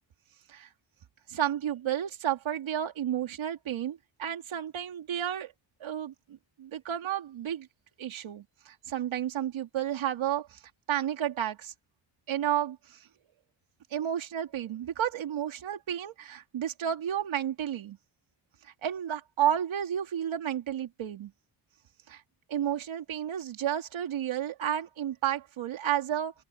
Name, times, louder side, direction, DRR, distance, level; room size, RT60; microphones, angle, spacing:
voice 1, 1.3-5.5 5.8-7.7 8.0-10.6 10.9-11.7 12.3-13.1 13.9-18.0 18.6-21.3 22.1-22.2 22.5-26.3, right 10 dB, 75° right, 3.1 m, -32 dB
open air
cardioid pair, 120°, 48 cm